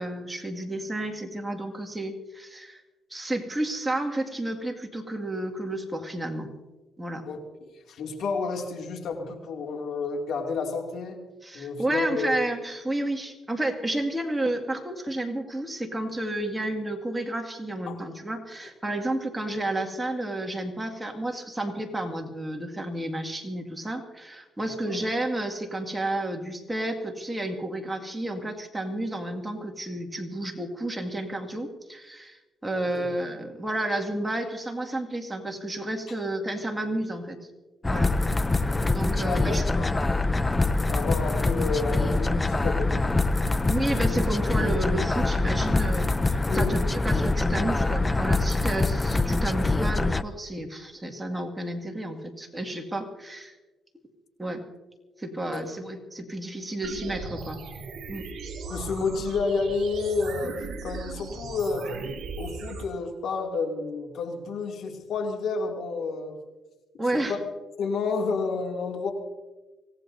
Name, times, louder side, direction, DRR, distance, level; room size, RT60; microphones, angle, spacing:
voice 1, 0.0-2.8 3.1-6.5 7.0-7.2 11.4-37.4 37.8-38.1 38.9-39.7 43.7-53.6 54.4-54.6 55.2-57.6 58.1-58.3 67.0-67.4, right 1 dB, 15° right, 3 dB, 2.1 m, -31 dB
voice 2, 7.3-11.2 11.5-12.4 17.9-18.0 24.6-25.0 32.7-33.1 38.5-38.8 39.1-40.1 40.9-43.2 46.5-46.8 55.4-55.6 58.7-62.0 62.4-66.4 67.1-67.4 67.8-69.1, left 4 dB, 70° left, 2 dB, 2.5 m, -30 dB
sound 1, 37.8-50.2, left 2 dB, 20° left, 0.5 m, -24 dB
sound 2, 56.8-62.8, right 4 dB, 65° right, 4.9 m, -38 dB
25.0 x 17.5 x 2.7 m, 1.2 s
cardioid pair, 90°, 0 cm